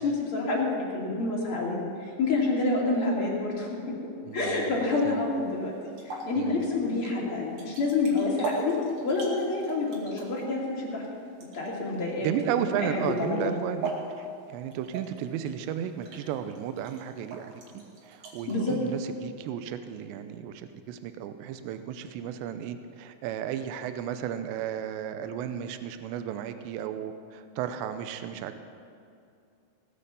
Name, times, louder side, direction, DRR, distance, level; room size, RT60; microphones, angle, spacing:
voice 1, 0.0-4.0 4.3-5.7 6.0-8.8 9.0-11.0 11.4-12.3 12.6-12.7 13.1-13.5 18.5-18.8, left 3 dB, 35° left, -4 dB, 2.9 m, -28 dB
sound 1, 4.3-18.7, right 3 dB, 50° right, 3.1 m, -42 dB
voice 2, 4.3-5.2 6.4-6.7 12.2-13.9 14.2-28.6, right 9 dB, 85° right, 9 dB, 2.9 m, -34 dB
18.0 x 8.9 x 6.9 m, 2.5 s
omnidirectional pair, 5.1 m